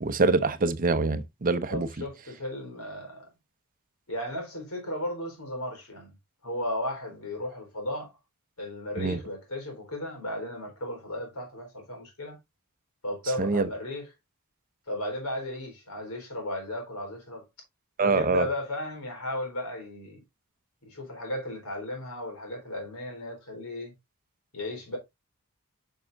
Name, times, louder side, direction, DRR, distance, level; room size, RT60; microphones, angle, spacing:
voice 1, 0.0-1.9 9.0-9.2 13.4-13.7 18.0-18.5, right 3 dB, 40° right, 0.6 m, -25 dB
voice 2, 1.7-3.3 4.1-6.1 6.4-8.1 8.6-12.4 13.0-14.1 14.9-17.4 18.0-20.2 20.8-23.9 24.5-25.0, left 1 dB, 80° left, 4.1 m, -35 dB
9.5 x 5.6 x 2.6 m
head